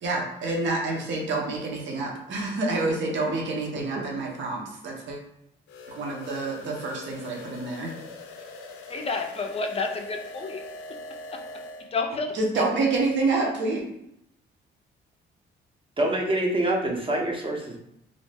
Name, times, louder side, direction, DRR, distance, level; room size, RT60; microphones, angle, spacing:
voice 1, 0.0-5.2 5.9-7.9 12.3-13.8, right 3 dB, 70° right, -1 dB, 0.7 m, -28 dB
sound 1, 5.7-11.9, left 2 dB, 85° left, 0.5 m, -42 dB
voice 2, 8.9-10.6 11.3-11.4 11.9-12.6, left 4 dB, 30° left, 4 dB, 0.4 m, -30 dB
voice 3, 16.0-17.8, right 1 dB, 25° right, 0 dB, 0.6 m, -26 dB
2.6 x 2.0 x 3.3 m, 0.79 s
cardioid pair, 90°, 20 cm